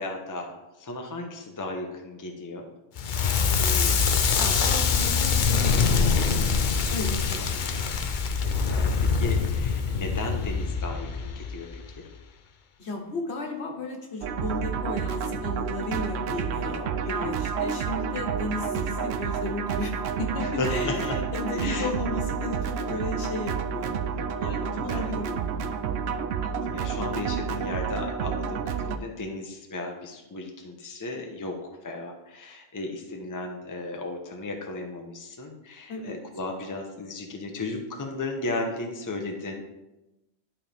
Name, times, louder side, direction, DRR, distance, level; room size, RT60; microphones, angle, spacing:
voice 1, 0.0-2.7 7.3-7.6 8.5-11.8 16.6-17.1 18.6-19.1 20.4-21.2 21.6-21.9 24.4-25.1 26.4-39.6, left 2 dB, 20° left, 2 dB, 0.7 m, -35 dB
Crackle, 3.0-11.9, left 5 dB, 55° left, 0.7 m, -24 dB
voice 2, 3.6-8.1 12.8-25.8 35.9-36.2, left 2 dB, 75° left, 1 dB, 1.5 m, -35 dB
sound 1, 14.2-29.0, right 6 dB, 75° right, 0.8 m, -30 dB
11.5 x 4.4 x 3.4 m, 0.97 s
omnidirectional pair, 1.1 m